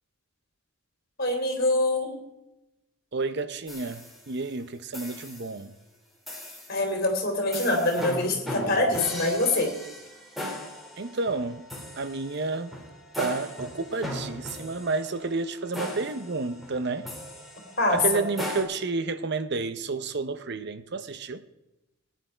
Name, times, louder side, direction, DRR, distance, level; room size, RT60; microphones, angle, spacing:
voice 1, 1.2-2.2 6.7-9.7 17.8-18.2, left 2 dB, 45° left, 3.0 m, -24 dB
voice 2, 3.1-5.7 11.0-11.7 12.0-12.7 13.2-17.1 17.9-21.4, right 3 dB, 50° right, 0.7 m, -30 dB
sound 1, 3.7-4.5 4.9-5.6 6.3-6.8 7.5-18.6, equal, ahead, 2.4 m, -38 dB
17.5 x 10.0 x 4.5 m
head